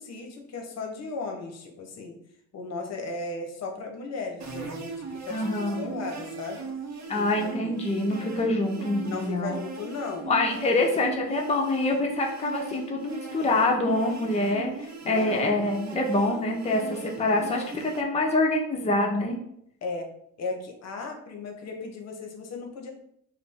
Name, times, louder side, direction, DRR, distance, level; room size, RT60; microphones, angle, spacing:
voice 1, 0.0-2.2 2.5-6.6 7.1-7.7 9.0-10.3 15.0-15.5 19.8-20.1 20.4-22.9, left 3 dB, 60° left, 3 dB, 0.8 m, -36 dB
sound 1, 4.4-18.0, right 5 dB, 65° right, 0.7 m, -39 dB
voice 2, 5.3-5.9 7.1-9.6 10.3-19.4, left 2 dB, 20° left, 0 dB, 0.7 m, -26 dB
4.8 x 2.0 x 3.5 m, 0.73 s
cardioid pair, 90°, 30 cm